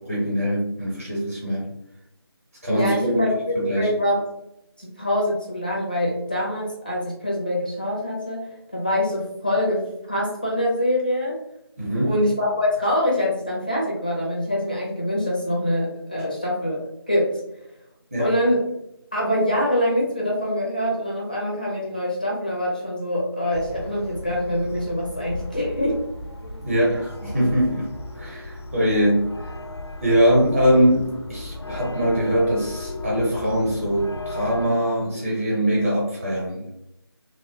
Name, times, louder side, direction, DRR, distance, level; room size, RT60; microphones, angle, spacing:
voice 1, 0.0-1.7 2.6-3.1 3.5-3.9 11.8-12.1 18.1-18.3 26.6-27.9 28.1-29.5 30.0-36.7, equal, 25° right, -6 dB, 0.7 m, -22 dB
voice 2, 2.7-4.2 4.8-11.4 12.0-17.3 18.2-18.6 19.1-26.0 28.9-29.0, left 1 dB, 20° left, -4 dB, 0.5 m, -24 dB
sound 1, 23.5-34.7, left 2 dB, 90° left, 0.5 m, -35 dB
2.9 x 2.1 x 2.7 m, 0.82 s
figure-of-eight pair, 175°, 13 cm